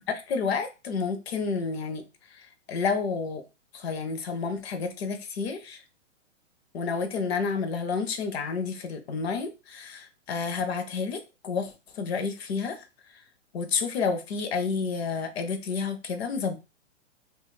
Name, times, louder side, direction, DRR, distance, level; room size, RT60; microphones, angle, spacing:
voice 1, 0.1-2.0 2.3-3.4 3.7-5.8 6.7-12.8 13.5-16.6, left 5 dB, 55° left, 0.6 m, -30 dB
2.3 x 2.2 x 3.1 m
hypercardioid pair, 150°, 37 cm